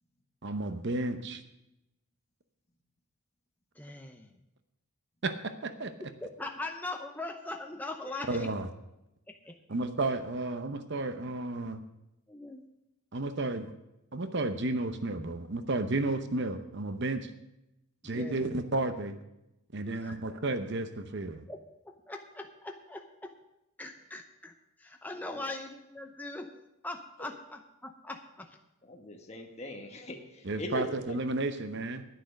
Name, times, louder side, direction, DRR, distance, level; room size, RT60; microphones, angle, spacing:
voice 1, 0.4-1.4 5.2-5.9 8.3-8.7 9.7-11.8 13.1-13.7 14.1-17.3 18.0-19.2 19.7-21.4 30.4-32.0, right 2 dB, 50° right, 9 dB, 0.8 m, -32 dB
voice 2, 3.7-4.3 6.2-8.6 9.3-9.5 12.3-12.6 18.0-18.5 19.8-20.2 21.5-21.6 21.8-23.3 23.8-26.5 26.8-28.6 30.7-30.9, left 2 dB, 10° left, 4 dB, 0.7 m, -41 dB
voice 3, 28.9-31.2, left 2 dB, 30° left, 2 dB, 1.3 m, -41 dB
10.0 x 9.4 x 6.3 m, 0.89 s
head